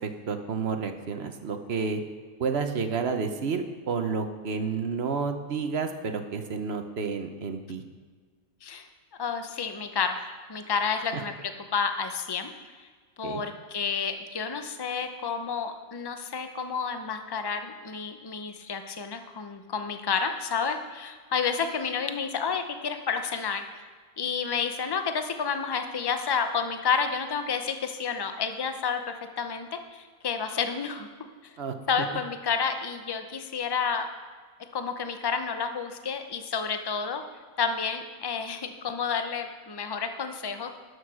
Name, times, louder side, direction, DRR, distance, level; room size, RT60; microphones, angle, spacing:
voice 1, 0.0-2.0 2.4-7.8 11.1-11.2 13.2-13.4 31.6-31.7, right 5 dB, 55° right, 7 dB, 1.0 m, -30 dB
voice 2, 9.2-10.2 10.5-12.5 12.8-12.9 13.2-23.6 24.2-29.0 29.4-31.5 31.9-34.1 34.7-37.2 37.6-40.7, left 6 dB, 25° left, 7 dB, 0.5 m, -30 dB
11.5 x 6.4 x 6.2 m, 1.5 s
omnidirectional pair, 1.4 m